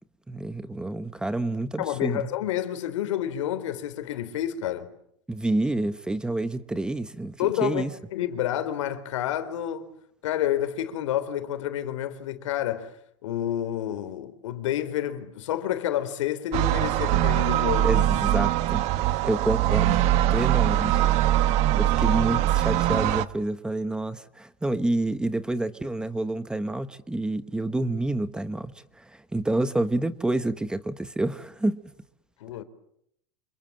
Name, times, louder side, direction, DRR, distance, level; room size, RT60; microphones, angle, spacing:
voice 1, 0.3-2.2 5.3-8.0 17.8-18.8 19.2-21.0 21.8-31.8, right 2 dB, 5° right, 1.2 m, -28 dB
voice 2, 1.8-4.9 7.4-9.9 10.2-13.0 13.2-18.0 32.4-32.6, left 11 dB, 85° left, 3.9 m, -29 dB
sound 1, 16.5-23.2, right 13 dB, 45° right, 1.5 m, -22 dB
29.0 x 27.5 x 7.5 m
supercardioid pair, 145°, 16 cm